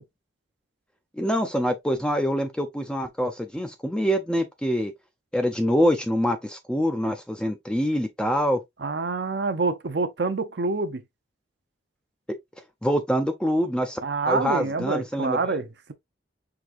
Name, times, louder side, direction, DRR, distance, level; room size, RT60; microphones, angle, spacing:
voice 1, 1.2-4.9 5.3-8.6 12.8-14.0 14.3-15.4, equal, 5° left, 0.4 m, -25 dB
voice 2, 8.8-11.0 14.0-15.9, right 3 dB, 55° right, 0.6 m, -27 dB
4.9 x 3.4 x 2.4 m
head